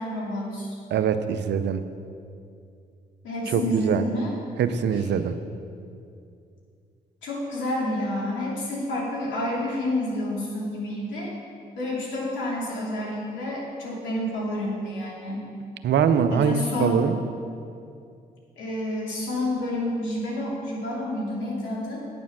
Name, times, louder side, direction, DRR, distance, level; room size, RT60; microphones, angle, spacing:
voice 1, 0.0-0.8 3.2-4.3 4.9-5.0 7.2-11.3 11.8-15.4 16.3-17.0 18.6-22.1, left 1 dB, 75° left, -5 dB, 2.9 m, -29 dB
voice 2, 0.9-1.8 3.5-4.0 4.6-5.4 15.8-17.2, right 7 dB, 60° right, 11 dB, 0.6 m, -23 dB
9.6 x 7.2 x 6.1 m, 2.4 s
hypercardioid pair, 45°, 20 cm